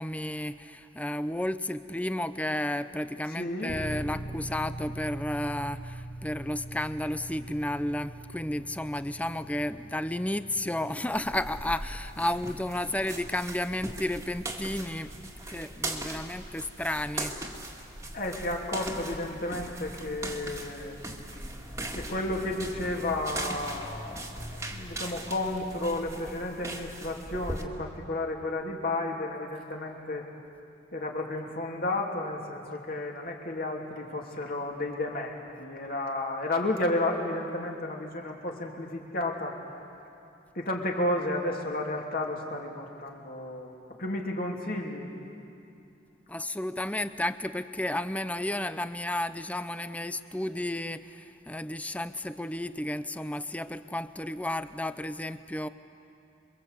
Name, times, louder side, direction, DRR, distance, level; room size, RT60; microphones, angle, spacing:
voice 1, 0.0-15.2 15.5-17.4 46.3-55.7, left 1 dB, 5° left, 12 dB, 0.6 m, -32 dB
voice 2, 3.4-3.8 18.1-21.0 21.9-30.3 30.9-39.6 40.5-43.7 44.0-45.1, left 2 dB, 50° left, 0 dB, 3.1 m, -32 dB
sound 1, 3.7-20.4, right 1 dB, 30° left, 4.2 m, -44 dB
sound 2, 11.1-27.6, right 1 dB, 15° right, 1.9 m, -39 dB
28.0 x 23.5 x 8.3 m, 2.6 s
head